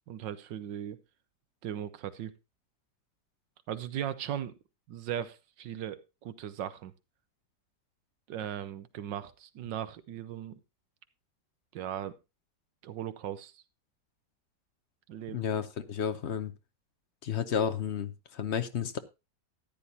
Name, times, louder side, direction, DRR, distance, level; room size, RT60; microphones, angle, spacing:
voice 1, 0.1-1.0 1.6-2.3 3.7-4.5 4.9-6.9 8.3-10.6 11.7-12.1 12.8-13.6 15.1-15.5, right 10 dB, 85° right, 14 dB, 1.5 m, -38 dB
voice 2, 15.3-16.5 17.2-19.0, left 8 dB, 50° left, 11 dB, 0.9 m, -32 dB
14.0 x 10.0 x 2.7 m, 0.25 s
omnidirectional pair, 1.9 m